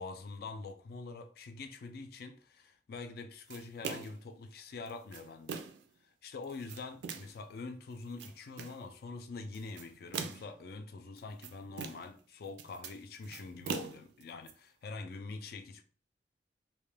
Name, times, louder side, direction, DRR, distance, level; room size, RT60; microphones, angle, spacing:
voice 1, 0.0-5.6 6.0-15.8, left 3 dB, 55° left, 0.3 m, -45 dB
sound 1, 3.5-4.3 4.9-5.9 6.4-7.4 8.0-8.8 9.5-10.6 11.2-12.2 12.5-14.5, right 6 dB, 75° right, 0.3 m, -42 dB
2.3 x 2.2 x 3.1 m
head